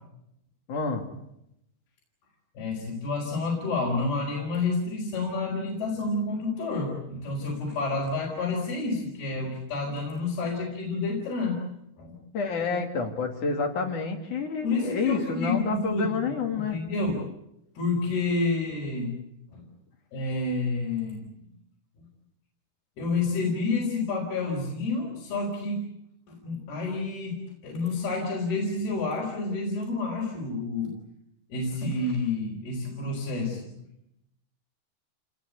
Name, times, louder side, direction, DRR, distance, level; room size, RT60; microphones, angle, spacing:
voice 1, 0.7-1.1 12.3-16.8, left 4 dB, 55° left, 3 dB, 3.8 m, -29 dB
voice 2, 2.6-11.6 12.0-12.2 14.6-16.2 16.7-17.1 17.8-19.2 19.5-19.6 20.1-21.3 22.0-22.1 23.0-25.9 26.3-30.9 31.5-33.7, left 3 dB, 80° left, -2 dB, 6.5 m, -29 dB
28.0 x 20.0 x 8.2 m, 0.83 s
omnidirectional pair, 4.5 m